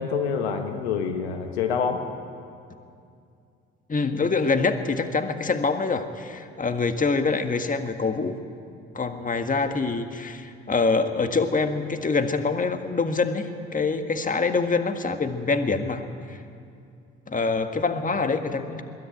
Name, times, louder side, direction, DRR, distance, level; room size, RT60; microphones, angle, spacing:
voice 1, 0.0-2.0, left 6 dB, 85° left, 6 dB, 1.4 m, -26 dB
voice 2, 3.9-8.4 8.9-16.4 17.3-18.8, left 4 dB, 25° left, 8 dB, 1.6 m, -25 dB
21.5 x 14.0 x 8.7 m, 2.4 s
hypercardioid pair, 55°, 32 cm